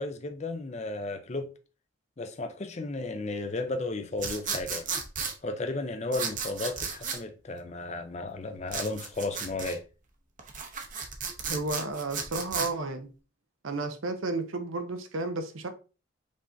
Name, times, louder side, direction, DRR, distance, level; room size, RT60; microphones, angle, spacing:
voice 1, 0.0-1.5 2.2-4.8 5.4-9.8, left 2 dB, 35° left, 0.5 m, -34 dB
sound 1, 4.2-5.3 6.1-7.2 8.7-9.8 10.4-12.7, right 5 dB, 40° right, 0.8 m, -34 dB
voice 2, 11.5-13.1 13.6-15.7, right 3 dB, 85° right, 0.7 m, -32 dB
5.2 x 3.6 x 2.6 m
head